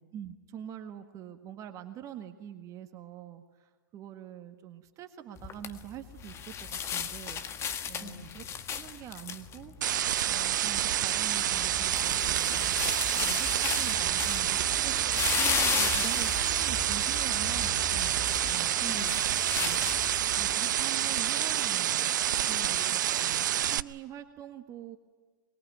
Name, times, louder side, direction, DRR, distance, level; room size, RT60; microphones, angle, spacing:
voice 1, 0.0-7.4 7.9-9.7 10.3-18.7 19.6-19.9 20.3-22.2 22.6-25.0, right 10 dB, 30° right, 7 dB, 1.7 m, -45 dB
sound 1, 5.4-20.5, left 7 dB, 25° left, 1.7 m, -35 dB
voice 2, 8.0-8.4 18.8-20.5 22.5-22.9, left 1 dB, 10° left, 6 dB, 2.9 m, -45 dB
sound 2, 9.8-23.8, right 11 dB, 65° right, 0.7 m, -28 dB
23.5 x 22.5 x 9.3 m, 1.5 s
hypercardioid pair, 115°, 11 cm